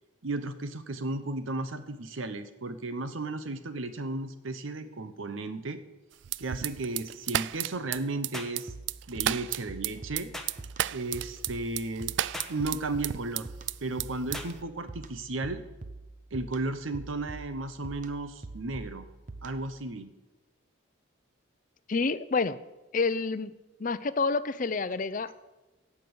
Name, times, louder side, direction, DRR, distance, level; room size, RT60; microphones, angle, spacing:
voice 1, 0.2-5.8 6.4-8.7 9.1-10.3 10.9-12.2 12.5-13.5 13.8-15.6 16.3-19.1 19.4-20.1, right 2 dB, 80° right, 10 dB, 0.9 m, -34 dB
sound 1, 6.2-13.7 14.0-14.6, right 12 dB, 60° right, 0.3 m, -32 dB
sound 2, 8.3-8.6 10.3-10.6 12.3-12.6 14.3-14.6, left 1 dB, ahead, 1.1 m, -39 dB
sound 3, 8.7-19.8, right 2 dB, 40° right, 0.7 m, -45 dB
voice 2, 21.9-22.6 22.9-23.5 23.8-25.3, left 4 dB, 40° left, 14 dB, 0.5 m, -28 dB
16.5 x 6.0 x 7.8 m, 1.1 s
head